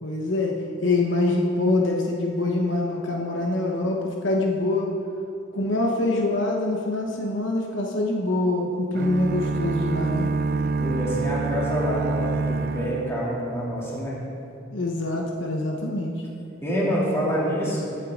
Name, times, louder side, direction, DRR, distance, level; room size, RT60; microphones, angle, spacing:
voice 1, 0.0-0.5 0.8-4.9 5.5-10.3 14.7-16.1, left 2 dB, 65° left, 0 dB, 1.1 m, -24 dB
sound 1, 8.9-13.9, right 3 dB, 45° right, 0.4 m, -27 dB
voice 2, 10.8-14.2 16.6-17.9, equal, 15° left, -7 dB, 2.8 m, -26 dB
20.0 x 8.3 x 3.8 m, 2.7 s
head